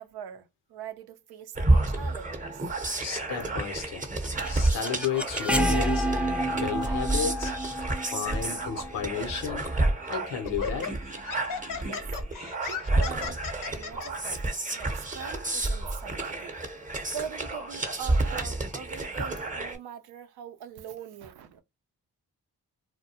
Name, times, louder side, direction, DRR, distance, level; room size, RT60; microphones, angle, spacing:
voice 1, 0.0-2.6 11.8-12.0 12.6-13.4 13.7-16.6 17.1-21.6, right 8 dB, 75° right, 0.5 m, -42 dB
sound 1, 1.6-19.8, right 2 dB, 20° right, 0.8 m, -30 dB
voice 2, 3.0-4.1 4.5-6.1 6.5-7.5 8.1-9.7 10.0-11.0, left 7 dB, 90° left, 0.7 m, -33 dB
sound 2, 4.0-9.9, right 1 dB, 5° right, 0.4 m, -30 dB
Laughter, 9.6-9.8 10.4-14.1, left 6 dB, 55° left, 0.6 m, -36 dB
2.3 x 2.1 x 2.7 m
supercardioid pair, 40°, 39 cm